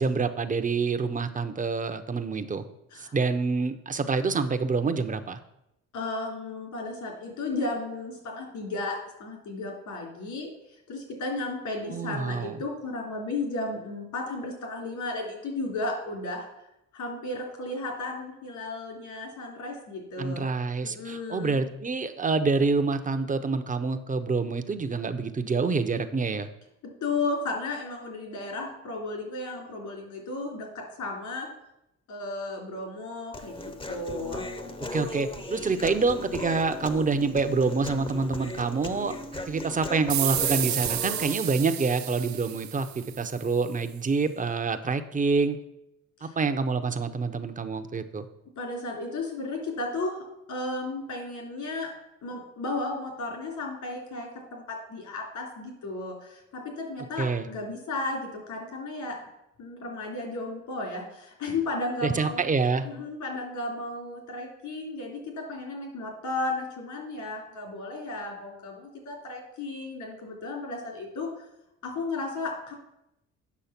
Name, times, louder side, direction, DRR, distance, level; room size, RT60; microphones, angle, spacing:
voice 1, 0.0-2.6 3.0-5.4 11.9-12.6 20.2-26.5 34.9-39.1 39.5-45.6 46.2-48.3 57.2-57.5 62.0-62.9, right 4 dB, 25° right, 9 dB, 0.8 m, -27 dB
voice 2, 5.9-10.5 10.9-16.5 16.9-20.5 20.8-21.6 27.0-30.7 31.0-31.5 32.1-34.5 46.2-46.4 48.6-50.2 50.5-51.9 52.2-58.2 58.5-59.2 59.6-62.4 62.8-71.4 71.8-72.7, left 2 dB, 80° left, 0 dB, 3.4 m, -34 dB
Human voice, 33.3-41.3, left 2 dB, 15° left, 0.8 m, -37 dB
sound 1, 40.1-43.4, right 12 dB, 65° right, 0.6 m, -31 dB
8.4 x 6.2 x 5.9 m, 0.85 s
cardioid pair, 90°, 30 cm